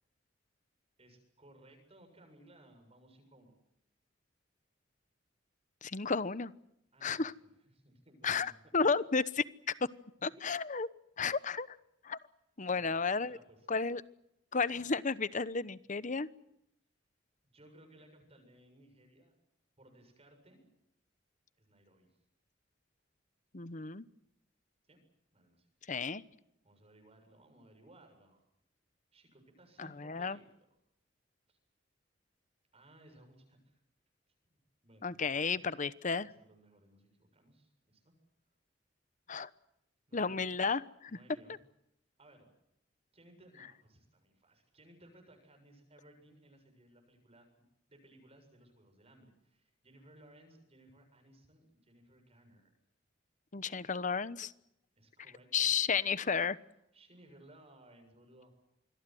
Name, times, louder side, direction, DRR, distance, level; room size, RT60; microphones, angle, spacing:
voice 1, 1.0-3.6 6.9-7.3 7.7-8.6 12.6-12.9 13.3-13.7 17.4-19.3 19.8-20.7 21.6-22.1 24.9-25.0 25.3-25.7 26.6-28.4 29.1-30.4 31.5-31.6 32.7-33.8 34.5-34.6 34.8-35.7 36.2-38.1 40.1-40.5 41.1-41.6 42.2-42.5 43.1-47.5 47.9-52.7 55.0-55.9 56.9-58.5, right 1 dB, 35° right, 5 dB, 7.4 m, -61 dB
voice 2, 5.8-6.5 7.0-7.3 8.2-9.2 9.7-9.8 10.2-10.9 11.2-11.8 12.0-12.2 12.6-13.4 13.7-14.0 14.5-16.3 23.5-24.0 25.9-26.2 29.8-30.4 35.0-36.3 39.3-39.5 40.1-41.1 53.5-54.5 55.5-56.6, left 5 dB, 40° left, 17 dB, 1.0 m, -32 dB
27.0 x 22.0 x 7.8 m, 0.81 s
head